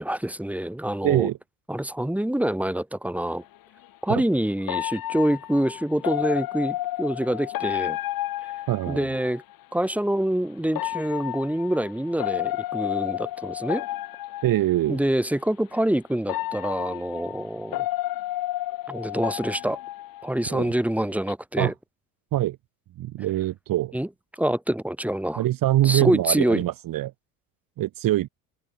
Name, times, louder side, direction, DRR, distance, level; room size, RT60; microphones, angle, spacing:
voice 1, 0.0-1.3 1.7-3.4 4.0-8.0 8.9-9.4 9.7-13.9 14.9-17.9 18.9-19.8 20.2-21.7 23.9-24.1 24.4-25.4 25.8-26.6, right 1 dB, 5° right, 3.8 m, -26 dB
voice 2, 1.0-1.4 4.1-4.2 8.7-9.1 14.4-15.0 20.5-20.7 21.6-21.7 22.3-22.6 23.0-23.9 25.4-27.1 27.8-28.3, right 14 dB, 55° right, 1.4 m, -23 dB
sound 1, 3.2-3.3 4.7-9.4 10.7-14.9 15.7-15.8 16.3-20.7 21.0-21.3, left 15 dB, 55° left, 1.5 m, -31 dB
supercardioid pair, 75°, 42 cm